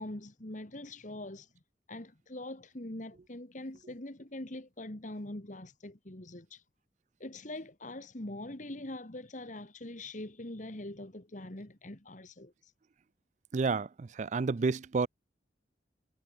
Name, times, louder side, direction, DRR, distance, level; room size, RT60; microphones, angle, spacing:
voice 1, 0.0-1.5 1.9-6.6 7.2-12.7, left 1 dB, 45° left, 2.0 m, -43 dB
voice 2, 13.5-15.1, right 4 dB, 40° right, 0.4 m, -30 dB
head